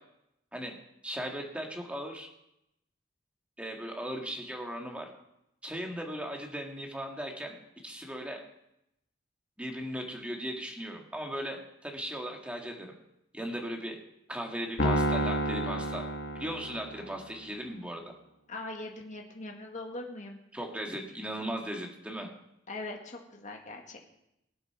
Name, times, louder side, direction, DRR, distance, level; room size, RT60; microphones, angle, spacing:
voice 1, 1.0-2.3 3.6-5.1 5.6-8.4 9.6-12.9 13.3-14.0 14.3-16.0 16.4-18.2 20.5-22.3, equal, 5° right, 1 dB, 1.8 m, -37 dB
Piano, 14.8-17.2, right 1 dB, 55° left, 1.7 m, -30 dB
voice 2, 18.5-20.4 22.7-24.0, left 2 dB, 40° left, 1 dB, 1.8 m, -41 dB
19.0 x 8.3 x 5.8 m, 0.83 s
head